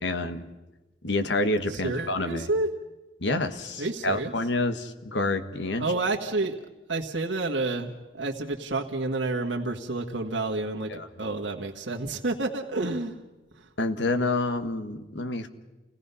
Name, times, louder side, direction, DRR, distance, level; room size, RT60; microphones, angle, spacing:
voice 1, 0.0-0.5 1.0-2.5 3.2-5.9 10.9-11.1 13.8-15.5, left 2 dB, 75° left, 8 dB, 1.4 m, -28 dB
voice 2, 1.7-2.7 3.8-4.3 5.8-6.6 6.9-13.1 13.6-13.7, right 2 dB, 85° right, 0 dB, 1.6 m, -29 dB
28.5 x 17.5 x 5.6 m, 1.1 s
head